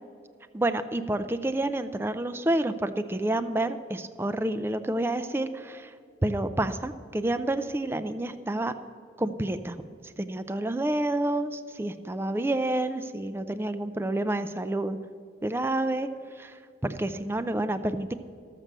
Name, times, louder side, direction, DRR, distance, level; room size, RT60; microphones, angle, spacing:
voice 1, 0.5-5.9 6.2-8.7 9.2-9.8 10.0-15.0 15.4-18.1, right 1 dB, 15° right, 9 dB, 0.3 m, -29 dB
12.5 x 7.5 x 6.6 m, 2.3 s
head